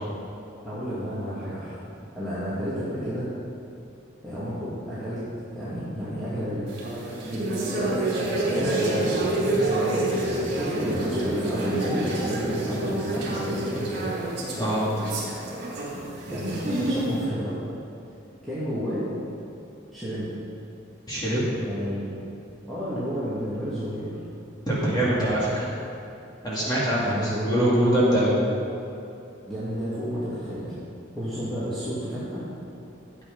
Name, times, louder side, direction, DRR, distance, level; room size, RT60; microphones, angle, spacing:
voice 1, 0.6-1.8 2.1-3.3 4.2-5.2 5.5-6.7 7.3-7.6 8.5-9.4 10.4-13.9 16.3-17.5 18.4-19.0 19.9-20.3 21.6-22.1 22.7-24.2 26.9-27.5 29.5-30.7 31.2-32.4, equal, ahead, -13 dB, 2.4 m, -31 dB
sound 1, 6.7-17.2, right 2 dB, 50° right, 3.2 m, -27 dB
voice 2, 21.1-21.5 24.7-25.6 26.4-28.3, right 1 dB, 20° left, -8 dB, 2.6 m, -23 dB
13.0 x 8.4 x 5.6 m, 2.7 s
head